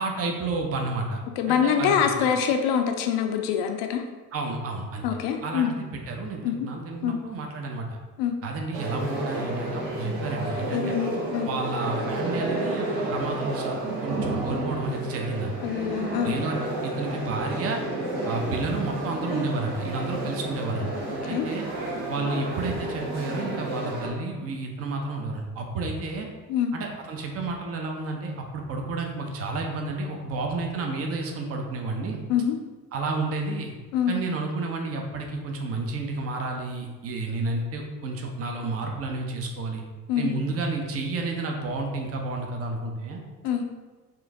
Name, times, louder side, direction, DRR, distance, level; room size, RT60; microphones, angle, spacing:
voice 1, 0.0-1.2 1.5-2.3 4.3-5.0 5.4-8.0 8.4-11.0 11.4-15.5 16.2-17.8 18.3-20.9 21.3-21.6 22.1-26.3 26.7-32.2 32.9-33.7 34.1-39.8 40.2-43.2, right 3 dB, 30° right, 2 dB, 0.7 m, -31 dB
voice 2, 1.4-4.0 5.0-5.7 6.4-6.7 7.0-7.2 8.2-8.4 10.7-11.5 15.6-16.4 21.2-21.5 26.5-26.7 32.3-32.5 33.9-34.1 40.1-40.4 43.4-43.6, left 8 dB, 50° left, 5 dB, 0.6 m, -25 dB
sound 1, 8.7-24.1, right 2 dB, 75° right, 1.2 m, -31 dB
4.5 x 2.5 x 3.4 m, 1.3 s
hypercardioid pair, 65°, 50 cm